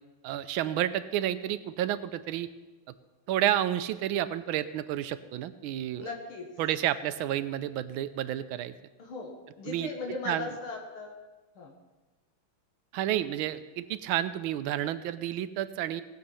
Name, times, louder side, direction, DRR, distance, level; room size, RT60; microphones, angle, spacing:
voice 1, 0.2-2.5 3.3-6.1 6.6-8.7 9.6-9.9 10.3-10.5 12.9-16.0, right 12 dB, 80° right, 12 dB, 1.4 m, -30 dB
voice 2, 6.0-6.5 9.0-11.1 11.6-11.7, left 3 dB, 80° left, 1 dB, 2.3 m, -38 dB
18.0 x 7.7 x 5.6 m, 1.2 s
omnidirectional pair, 2.3 m